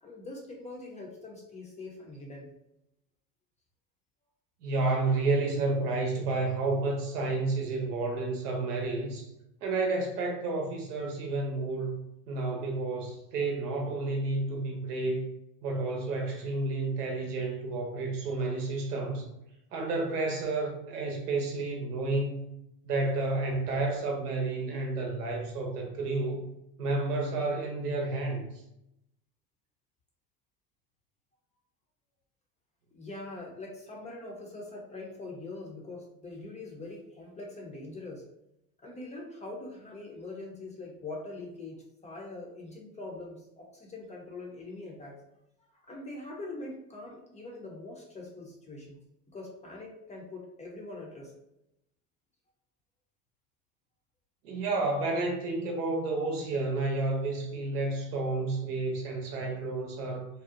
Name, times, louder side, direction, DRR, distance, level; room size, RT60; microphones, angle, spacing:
voice 1, 0.0-2.5 32.9-38.2 38.8-45.2 45.6-49.0 49.3-51.3, left 2 dB, 15° left, -1 dB, 0.5 m, -43 dB
voice 2, 4.6-9.3 9.6-12.0 12.3-15.3 15.6-19.3 19.7-22.4 22.8-26.4 26.8-28.5 54.4-60.3, right 3 dB, 90° right, 1 dB, 0.8 m, -30 dB
2.7 x 2.0 x 2.4 m, 0.84 s
hypercardioid pair, 90°, 45 cm